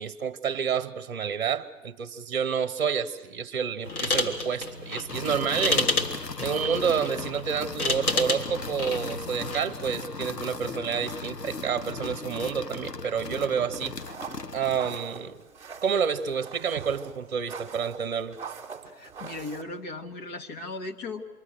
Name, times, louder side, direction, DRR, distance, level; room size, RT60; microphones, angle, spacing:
voice 1, 0.0-5.9 6.4-13.9 14.5-15.4 15.8-18.4, right 7 dB, 40° right, 11 dB, 1.3 m, -29 dB
sound 1, 3.8-9.8, left 2 dB, 65° left, 3.4 m, -30 dB
sound 2, 5.1-15.1, left 4 dB, 85° left, 1.1 m, -37 dB
sound 3, 14.0-19.6, right 6 dB, 5° right, 1.8 m, -43 dB
voice 2, 18.9-21.2, left 3 dB, 25° left, 4 dB, 1.8 m, -37 dB
27.5 x 23.5 x 6.6 m, 1.2 s
figure-of-eight pair, 125°, 47 cm